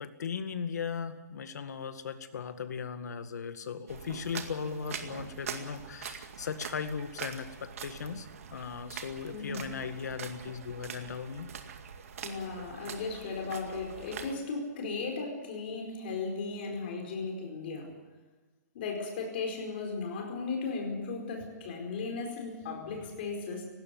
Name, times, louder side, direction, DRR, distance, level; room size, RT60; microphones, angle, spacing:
voice 1, 0.0-11.5, left 6 dB, 75° left, 10 dB, 2.0 m, -38 dB
sound 1, 3.9-14.3, right 7 dB, 55° right, 2.1 m, -44 dB
voice 2, 9.3-9.6 12.2-17.9 18.7-23.6, left 4 dB, 35° left, 2 dB, 4.7 m, -36 dB
19.0 x 16.0 x 9.4 m, 1.3 s
hypercardioid pair, 180°, 9 cm